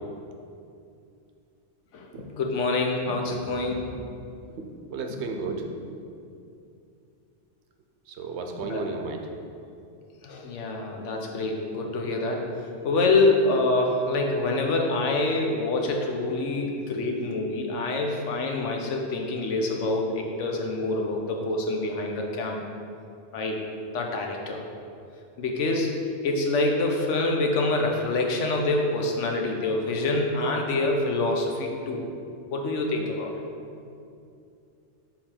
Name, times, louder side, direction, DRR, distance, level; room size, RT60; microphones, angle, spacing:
voice 1, 1.9-3.9 8.6-8.8 10.2-12.5 12.8-22.6 23.3-23.6 23.9-24.6 25.4-25.9 26.2-32.0 32.5-33.3, left 2 dB, 90° left, 2 dB, 1.1 m, -26 dB
voice 2, 4.9-6.0 8.1-9.3, right 3 dB, 70° right, 4 dB, 0.9 m, -33 dB
6.6 x 3.9 x 4.3 m, 2.5 s
omnidirectional pair, 1.2 m